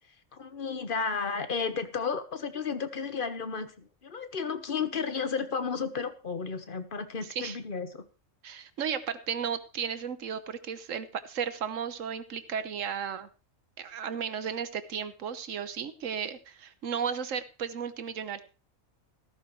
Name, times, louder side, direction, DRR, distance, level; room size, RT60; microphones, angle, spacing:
voice 1, 0.3-8.0, left 5 dB, 45° left, 10 dB, 1.4 m, -33 dB
voice 2, 8.4-13.3 13.8-18.4, right 7 dB, 75° right, 11 dB, 1.4 m, -34 dB
15.0 x 13.5 x 3.2 m, 0.32 s
omnidirectional pair, 1.3 m